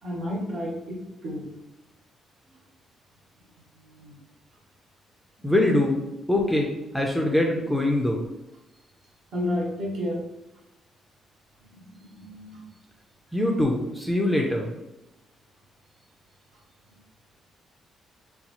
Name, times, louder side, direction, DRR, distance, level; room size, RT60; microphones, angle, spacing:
voice 1, 0.0-1.5 3.7-4.2 9.3-10.3 11.6-12.6, left 1 dB, 55° right, -3 dB, 1.1 m, -32 dB
voice 2, 5.4-6.0 6.3-8.3 13.3-14.7, left 1 dB, ahead, 0 dB, 0.4 m, -23 dB
4.1 x 2.3 x 2.8 m, 0.93 s
cardioid pair, 155°, 0 cm